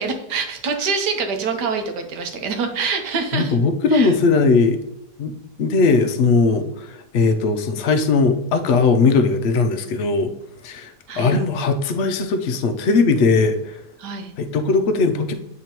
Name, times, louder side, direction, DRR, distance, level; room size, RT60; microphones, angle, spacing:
voice 1, 0.0-3.6 3.9-4.1 11.1-11.4 14.0-14.3, right 5 dB, 90° right, 5 dB, 1.5 m, -25 dB
voice 2, 3.3-4.8 5.2-10.3 10.6-10.9 11.2-13.7 14.4-15.3, left 4 dB, 65° left, 6 dB, 0.6 m, -19 dB
9.0 x 3.7 x 2.9 m, 0.83 s
omnidirectional pair, 1.7 m